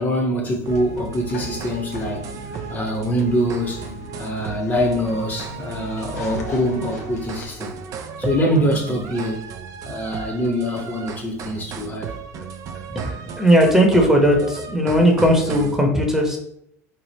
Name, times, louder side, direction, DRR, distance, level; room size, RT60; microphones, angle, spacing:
voice 1, 0.0-2.3 2.7-3.8 4.2-7.7 8.2-9.5 9.8-12.1, equal, 25° left, 0.9 m, -24 dB
sound 1, 0.7-7.5, left 3 dB, 80° left, 0.7 m, -37 dB
sound 2, 0.7-15.8, right 6 dB, 40° right, 0.4 m, -36 dB
voice 2, 12.9-16.4, equal, 5° right, 0.9 m, -17 dB
3.4 x 2.4 x 4.1 m
figure-of-eight pair, 70°, 8 cm